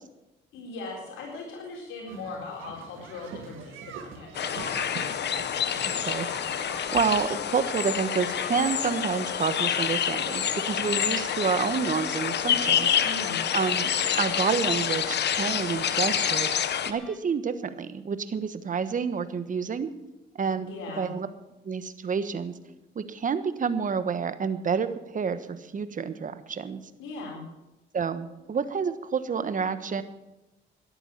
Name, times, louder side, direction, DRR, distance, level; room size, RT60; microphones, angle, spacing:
voice 1, 0.5-5.1 13.0-13.4 20.6-21.1 27.0-27.4, left 3 dB, 85° left, -1 dB, 4.1 m, -39 dB
sound 1, 2.1-7.1, right 7 dB, 80° right, 1.9 m, -43 dB
sound 2, 4.3-16.9, left 9 dB, 60° left, 1.0 m, -27 dB
voice 2, 5.8-6.3 6.9-13.0 13.5-13.9 14.2-16.5 16.9-19.9 20.3-20.7 21.0-21.3 21.6-22.5 22.9-26.8 27.9-30.0, right 6 dB, 40° right, 12 dB, 1.3 m, -29 dB
sound 3, 6.2-17.2, right 1 dB, 5° left, 2.2 m, -50 dB
14.0 x 11.0 x 7.4 m, 0.98 s
cardioid pair, 90°, 20 cm